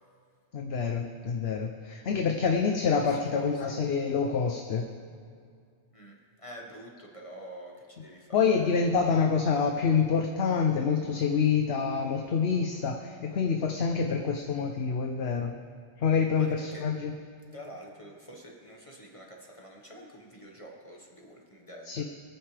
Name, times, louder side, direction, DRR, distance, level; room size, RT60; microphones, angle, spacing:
voice 1, 0.5-4.9 8.3-15.5 16.0-17.1 21.8-22.0, left 5 dB, 65° left, 4 dB, 1.0 m, -27 dB
voice 2, 6.4-8.5 16.4-16.8 17.5-22.0, equal, 30° left, -1 dB, 1.5 m, -47 dB
26.0 x 9.1 x 3.4 m, 2.3 s
omnidirectional pair, 1.2 m